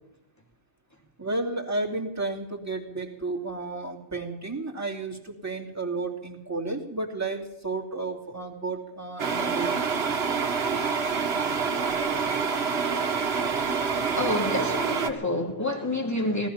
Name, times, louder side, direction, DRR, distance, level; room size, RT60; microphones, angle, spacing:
voice 1, 1.2-9.8, right 3 dB, 15° right, 2.7 m, -32 dB
sound 1, 9.2-15.1, right 5 dB, 55° right, 1.4 m, -27 dB
voice 2, 13.9-16.5, left 1 dB, 15° left, 2.5 m, -28 dB
18.5 x 13.5 x 5.8 m
omnidirectional pair, 1.3 m